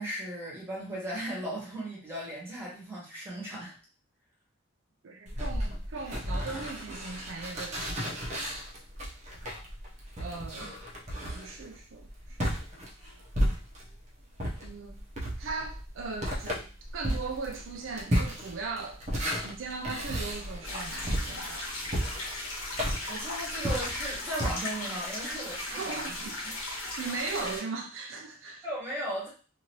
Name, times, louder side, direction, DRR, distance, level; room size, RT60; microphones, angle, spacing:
voice 1, 0.0-3.7 10.6-10.7 22.6-22.8 23.1-26.1 26.4-26.6 28.6-29.3, right 1 dB, 10° right, -6 dB, 1.2 m, -37 dB
voice 2, 5.0-8.4 10.2-10.8 11.2-12.5 14.6-19.0 19.4-21.7 25.6-26.4 26.8-28.7, right 4 dB, 65° right, 2 dB, 0.4 m, -39 dB
sound 1, 5.3-14.0 14.4-24.5, equal, 35° right, 0.7 m, -33 dB
sound 2, 20.6-27.6, left 2 dB, 85° left, 1.1 m, -37 dB
2.8 x 2.5 x 2.9 m, 0.37 s
head